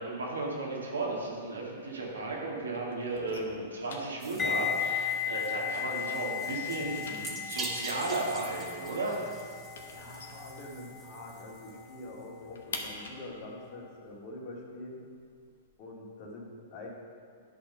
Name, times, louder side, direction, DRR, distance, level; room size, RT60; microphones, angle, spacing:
voice 1, 0.0-9.2, right 2 dB, 90° right, -3 dB, 2.0 m, -35 dB
sound 1, 1.0-2.4 2.7-5.9 6.2-11.2 11.5-11.6 11.9-15.7, left 4 dB, 75° left, 1.1 m, -47 dB
sound 2, 4.2-12.3, right 3 dB, 25° right, 1.3 m, -45 dB
sound 3, 4.4-13.4 13.6-13.9, left 8 dB, 15° left, 0.3 m, -36 dB
voice 2, 9.9-15.1 15.8-16.9, left 2 dB, 45° left, -3 dB, 2.1 m, -45 dB
10.0 x 4.3 x 5.6 m, 2.1 s
hypercardioid pair, 120°, 0 cm